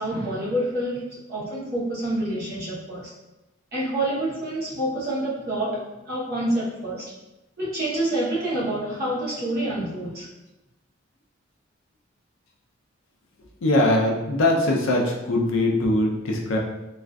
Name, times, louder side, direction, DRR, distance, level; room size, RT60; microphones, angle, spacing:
voice 1, 0.0-3.1 3.7-7.1 7.6-10.3, right 1 dB, 50° right, -7 dB, 0.9 m, -27 dB
voice 2, 13.6-16.6, left 1 dB, 85° left, 0 dB, 0.5 m, -21 dB
2.4 x 2.4 x 2.2 m, 1.0 s
head